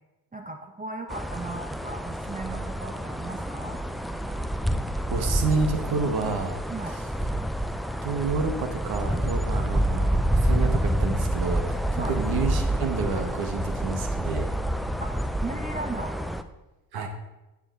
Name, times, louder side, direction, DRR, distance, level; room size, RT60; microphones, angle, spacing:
voice 1, 0.3-3.8 6.7-7.0 11.9-12.2 15.0-15.1 15.4-16.2, right 2 dB, 20° right, 4 dB, 1.3 m, -36 dB
sound 1, 1.1-16.4, right 1 dB, ahead, 0.5 m, -28 dB
voice 2, 5.1-6.6 8.0-14.5 16.9-17.1, right 4 dB, 55° right, 5 dB, 1.6 m, -29 dB
8.7 x 7.2 x 4.1 m, 0.99 s
hypercardioid pair, 55°, 45 cm